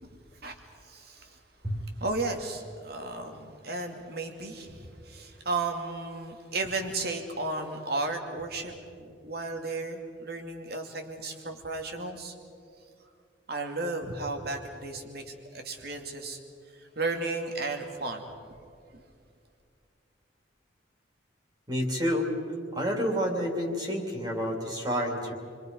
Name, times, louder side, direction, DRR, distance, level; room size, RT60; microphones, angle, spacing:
voice 1, 0.0-1.4 1.7-12.3 13.5-16.4 16.7-18.3 18.9-19.0, right 3 dB, 55° right, 4 dB, 2.5 m, -34 dB
voice 2, 21.7-22.3 22.7-25.3, equal, 20° right, 0 dB, 3.0 m, -29 dB
29.5 x 23.0 x 5.4 m, 2.4 s
head